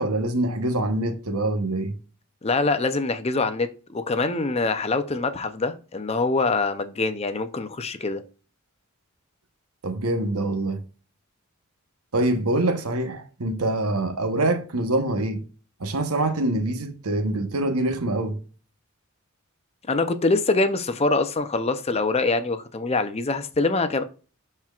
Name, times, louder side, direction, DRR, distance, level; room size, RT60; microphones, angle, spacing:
voice 1, 0.0-2.0 9.8-10.8 12.1-15.4 15.8-18.4, right 2 dB, 85° right, 1.1 m, -25 dB
voice 2, 2.4-8.2 19.9-24.0, left 3 dB, 30° left, 0.6 m, -24 dB
12.0 x 4.4 x 2.4 m
head